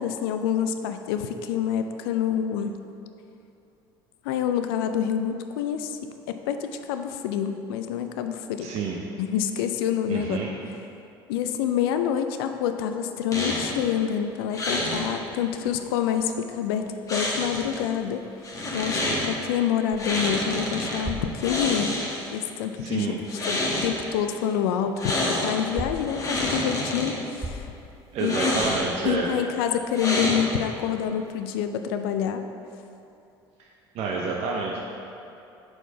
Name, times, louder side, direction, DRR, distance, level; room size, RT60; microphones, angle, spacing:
voice 1, 0.0-2.7 4.2-8.7 9.2-10.4 11.3-18.2 18.7-22.0 22.3-25.0 25.3-27.7 28.2-28.4 29.0-32.4, left 9 dB, 80° left, 8 dB, 0.4 m, -27 dB
voice 2, 8.6-9.0 10.1-10.5 22.8-23.2 28.1-29.3 33.9-34.8, right 4 dB, 55° right, -1 dB, 0.6 m, -28 dB
sound 1, 13.3-13.8 14.5-15.0 17.1-17.8 18.4-19.3 20.0-21.0 21.4-22.4 23.2-23.9 25.0-25.6 26.0-27.1 28.2-29.0 29.9-30.7, left 1 dB, 25° left, 1.5 m, -27 dB
sound 2, 19.9-23.3 23.6-29.4, right 1 dB, 15° right, 0.9 m, -40 dB
4.5 x 4.4 x 5.8 m, 2.7 s
hypercardioid pair, 75°, 12 cm